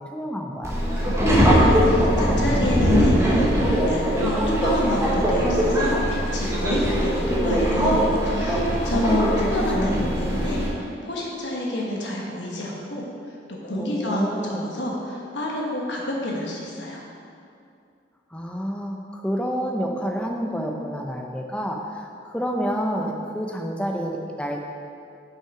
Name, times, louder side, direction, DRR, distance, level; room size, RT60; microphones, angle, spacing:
voice 1, 0.1-0.8 8.9-10.2 13.8-14.7 18.3-22.0 22.3-24.6, equal, 5° left, 1 dB, 0.6 m, -29 dB
Subway metro underground, 0.6-10.7, equal, 15° right, 1.1 m, -21 dB
voice 2, 1.0-10.6 11.0-13.4 13.6-17.0, left 1 dB, 75° left, -2 dB, 1.3 m, -29 dB
6.0 x 5.8 x 4.9 m, 2.4 s
head